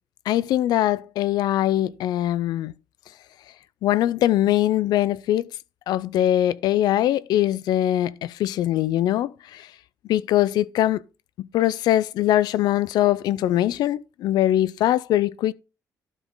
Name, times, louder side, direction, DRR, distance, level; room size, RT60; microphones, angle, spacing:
voice 1, 0.3-2.7 3.8-5.5 5.9-9.7 10.1-11.0 11.4-15.5, left 13 dB, 85° left, 0.5 m, -22 dB
12.0 x 5.2 x 3.9 m
cardioid pair, 165°, 7 cm